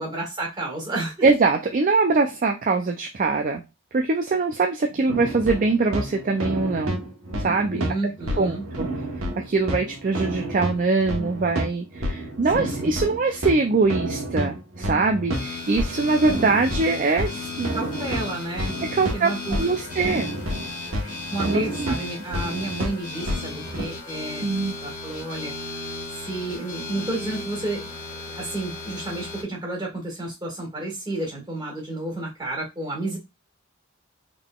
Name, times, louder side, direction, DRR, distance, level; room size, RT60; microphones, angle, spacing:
voice 1, 0.0-1.3 7.7-8.6 12.5-12.9 17.7-19.6 21.0-24.5 24.8-25.5 26.2-33.2, right 2 dB, 20° right, -2 dB, 1.8 m, -31 dB
voice 2, 1.2-3.6 3.9-7.0 7.4-7.8 8.4-8.9 9.4-17.8 18.8-20.3 21.5-21.9 24.4-24.7, right 3 dB, 40° right, 4 dB, 0.4 m, -23 dB
sound 1, 5.1-23.9, equal, 80° right, 1.1 m, -30 dB
sound 2, 15.3-29.4, left 3 dB, 35° left, 1.4 m, -36 dB
3.7 x 3.7 x 2.3 m, 0.23 s
head